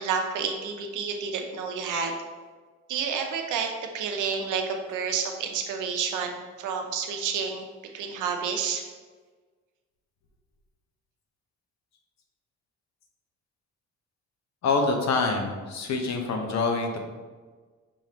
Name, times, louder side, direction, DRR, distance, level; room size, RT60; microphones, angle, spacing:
voice 1, 0.0-2.1 2.9-3.7 3.9-7.7 7.9-8.8, right 6 dB, 80° right, 4 dB, 0.7 m, -29 dB
voice 2, 14.6-17.0, left 3 dB, 65° left, 3 dB, 0.8 m, -26 dB
5.4 x 3.2 x 2.9 m, 1.4 s
cardioid pair, 90°, 30 cm